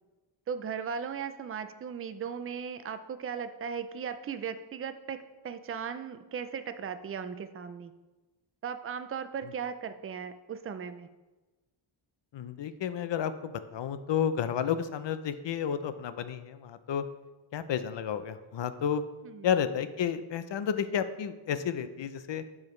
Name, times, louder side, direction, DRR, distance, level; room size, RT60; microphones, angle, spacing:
voice 1, 0.5-5.2 5.4-7.9 8.6-11.1 19.2-19.5, right 7 dB, 30° right, 10 dB, 0.4 m, -37 dB
voice 2, 12.3-17.0 17.5-19.0 19.4-22.4, left 8 dB, 60° left, 12 dB, 0.6 m, -31 dB
12.0 x 4.9 x 3.2 m, 1.2 s
wide cardioid pair, 160°, 50 cm